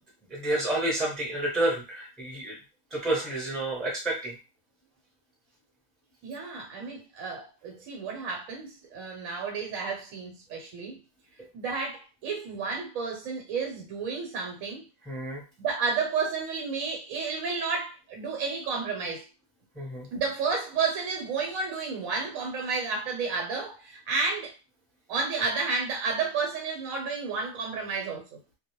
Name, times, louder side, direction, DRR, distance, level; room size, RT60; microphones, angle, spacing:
voice 1, 0.3-2.6 2.9-4.3 15.1-15.4 19.8-20.1, right 1 dB, ahead, 0.6 m, -29 dB
voice 2, 6.2-11.0 11.5-14.8 15.6-19.3 20.1-24.5 25.1-28.2, right 4 dB, 85° right, 1.1 m, -31 dB
2.3 x 2.1 x 2.9 m
omnidirectional pair, 1.4 m